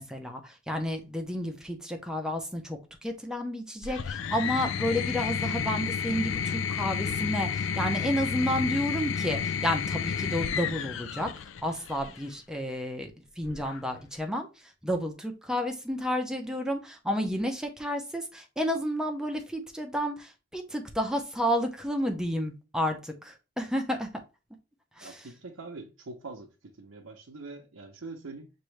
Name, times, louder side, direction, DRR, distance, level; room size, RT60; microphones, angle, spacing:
voice 1, 0.0-11.3 11.6-13.1 13.4-14.5 14.8-24.1 25.0-25.2, equal, 5° right, 0.6 m, -31 dB
sound 1, 3.8-12.2 13.4-14.1, left 7 dB, 65° left, 0.4 m, -31 dB
voice 2, 25.0-28.5, right 3 dB, 85° right, 0.7 m, -44 dB
6.0 x 2.6 x 3.2 m
head